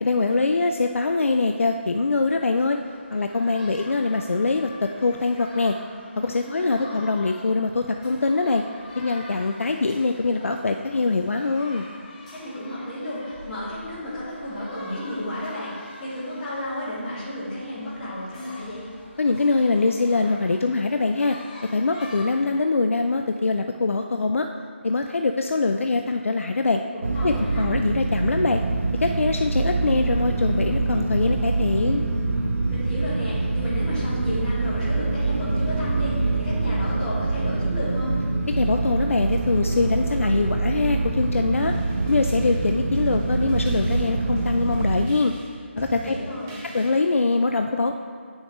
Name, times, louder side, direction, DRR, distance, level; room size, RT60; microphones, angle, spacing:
voice 1, 0.0-2.8 3.1-5.7 6.2-8.6 9.0-11.9 19.2-21.4 21.7-24.5 24.8-26.8 27.2-28.6 29.0-32.0 38.6-41.7 42.1-45.3 45.8-46.1 46.7-47.9, left 3 dB, 80° left, 5 dB, 0.4 m, -23 dB
sound 1, 2.7-22.4, left 2 dB, 25° left, 1.7 m, -45 dB
voice 2, 6.4-6.9 12.3-18.9 26.9-27.7 32.7-38.1 45.9-46.5, left 1 dB, 10° left, -14 dB, 1.8 m, -32 dB
sound 2, 27.0-45.1, right 3 dB, 75° right, 0.8 m, -25 dB
sound 3, 41.5-47.2, right 2 dB, 10° right, 0.6 m, -42 dB
8.8 x 6.3 x 3.1 m, 2.2 s
figure-of-eight pair, 170°, 7 cm